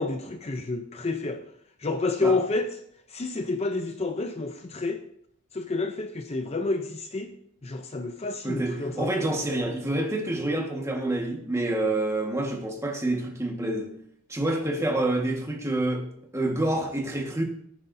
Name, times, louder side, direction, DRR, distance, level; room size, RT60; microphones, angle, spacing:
voice 1, 0.0-1.4 1.8-2.7 3.1-5.0 5.5-7.3 7.6-9.1, left 3 dB, 30° left, 0.6 m, -29 dB
voice 2, 8.4-14.0 14.3-17.4, right 1 dB, 15° right, 1.6 m, -27 dB
18.5 x 9.7 x 2.7 m
head